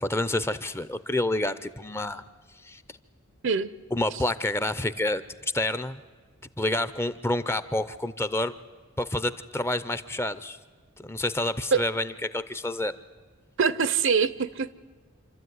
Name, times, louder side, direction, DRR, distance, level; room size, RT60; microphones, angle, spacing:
voice 1, 0.0-2.2 2.6-2.8 3.9-6.0 6.6-8.5 9.0-10.6 11.0-12.9, left 1 dB, 10° left, 13 dB, 0.6 m, -28 dB
voice 2, 13.6-14.7, right 5 dB, 60° right, 17 dB, 0.7 m, -24 dB
27.5 x 13.0 x 9.5 m, 1.4 s
head